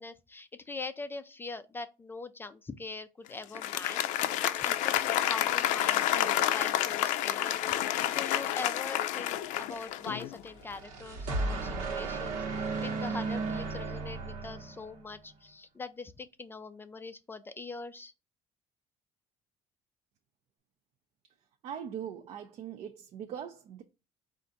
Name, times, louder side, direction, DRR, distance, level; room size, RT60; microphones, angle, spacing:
voice 1, 0.0-18.1, left 3 dB, 15° left, 0.3 m, -42 dB
Applause, 3.4-10.4, left 12 dB, 85° left, 0.4 m, -29 dB
sound 1, 10.6-15.2, right 3 dB, 80° right, 1.1 m, -35 dB
voice 2, 21.6-23.8, right 8 dB, 55° right, 0.5 m, -41 dB
4.6 x 2.5 x 3.8 m
cardioid pair, 140°, 13 cm